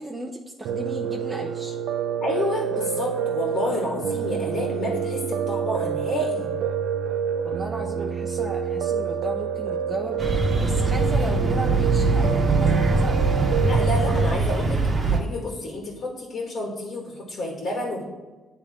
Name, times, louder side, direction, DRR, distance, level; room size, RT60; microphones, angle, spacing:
voice 1, 0.0-1.8 7.4-13.3, right 2 dB, 20° right, 0 dB, 0.7 m, -35 dB
Piano, 0.6-14.4, right 7 dB, 85° right, 0.4 m, -28 dB
voice 2, 2.2-6.5 13.6-18.0, left 1 dB, 60° left, -2 dB, 1.8 m, -29 dB
sound 1, 10.2-15.2, right 3 dB, 40° right, 1.1 m, -22 dB
9.5 x 3.5 x 3.6 m, 1.2 s
cardioid pair, 90°, 0 cm